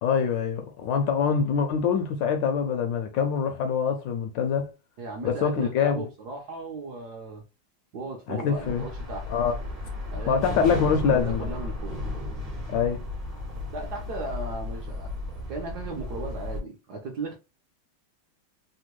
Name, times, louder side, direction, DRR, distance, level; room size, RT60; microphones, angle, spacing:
voice 1, 0.0-4.7 5.2-6.0 8.3-8.8 9.3-9.5 10.3-11.5 12.7-13.0, left 6 dB, 75° left, 1.1 m, -24 dB
voice 2, 5.0-7.4 7.9-9.3 10.1-12.0 13.7-15.1 15.5-17.4, right 3 dB, 70° right, 1.0 m, -37 dB
sound 1, 8.5-16.6, left 2 dB, 30° right, 0.6 m, -34 dB
3.5 x 2.2 x 3.0 m
omnidirectional pair, 2.3 m